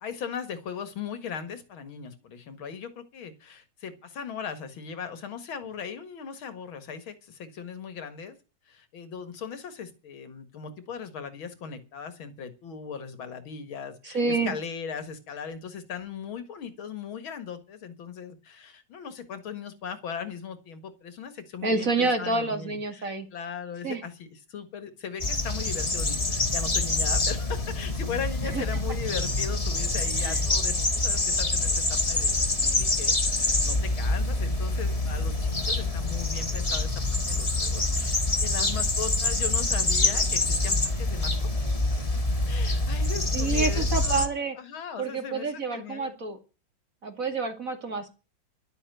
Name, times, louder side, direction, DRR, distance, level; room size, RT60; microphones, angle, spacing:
voice 1, 0.0-8.4 8.7-36.9 37.3-41.3 42.5-46.1, left 6 dB, 75° left, 11 dB, 2.5 m, -38 dB
voice 2, 14.0-14.5 21.6-23.3 23.8-24.0 28.5-28.6 30.2-30.4 43.3-44.5 45.0-46.4 47.0-48.1, right 3 dB, 40° right, 6 dB, 2.7 m, -28 dB
sound 1, 25.2-44.3, left 2 dB, 20° left, 1.4 m, -26 dB
12.0 x 8.0 x 9.2 m, 0.32 s
omnidirectional pair, 2.3 m